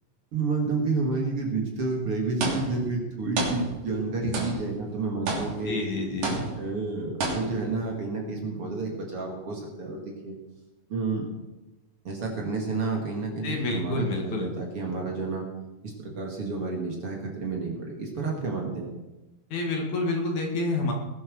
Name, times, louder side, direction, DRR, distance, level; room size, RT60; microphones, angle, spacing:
voice 1, 0.3-5.8 6.6-10.4 10.9-11.3 12.0-15.4 15.8-18.9, right 3 dB, 45° right, 0 dB, 2.8 m, -30 dB
sound 1, 2.4-3.0 3.4-4.1 4.3-4.8 5.3-5.8 6.2-6.8 7.2-7.8, right 2 dB, 65° right, 4.6 m, -31 dB
voice 2, 5.7-6.5 13.4-14.5 19.5-20.9, left 2 dB, 55° left, 1 dB, 3.0 m, -28 dB
20.0 x 8.0 x 6.4 m, 1.0 s
omnidirectional pair, 4.2 m